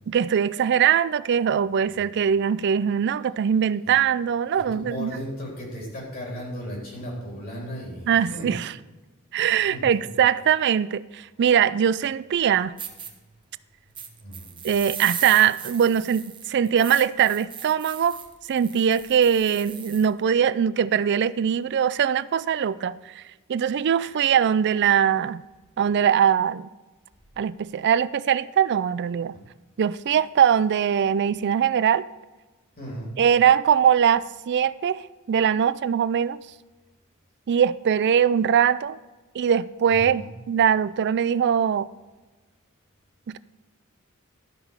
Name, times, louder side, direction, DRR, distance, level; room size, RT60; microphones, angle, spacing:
voice 1, 0.1-5.2 8.1-8.7 9.3-12.8 14.6-18.2 18.5-23.2 23.5-25.4 25.8-26.7 27.4-29.4 29.8-32.1 33.2-36.4 37.5-39.0 39.3-41.9 43.3-43.4, right 8 dB, 55° right, 0.3 m, -21 dB
voice 2, 4.5-8.5 9.7-10.1 14.2-14.5 29.3-29.5 32.8-33.1 39.9-40.3, equal, 45° left, 3.7 m, -36 dB
sound 1, 12.4-12.5 12.8-13.1 13.9-20.1, right 7 dB, 25° right, 0.9 m, -37 dB
12.0 x 5.8 x 5.6 m
head